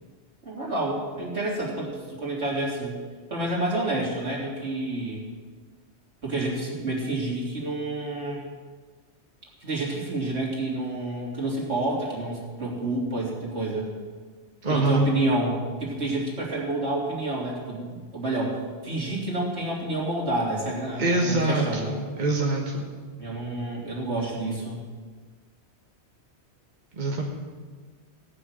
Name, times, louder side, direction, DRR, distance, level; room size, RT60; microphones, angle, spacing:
voice 1, 0.4-3.0 3.3-5.2 6.2-8.4 9.6-13.9 14.7-21.9 23.2-24.9, right 2 dB, 75° right, -4 dB, 3.6 m, -29 dB
voice 2, 14.6-15.1 20.9-22.8 26.9-27.2, right 2 dB, 45° right, -1 dB, 1.7 m, -24 dB
17.5 x 6.4 x 8.9 m, 1.5 s
omnidirectional pair, 1.1 m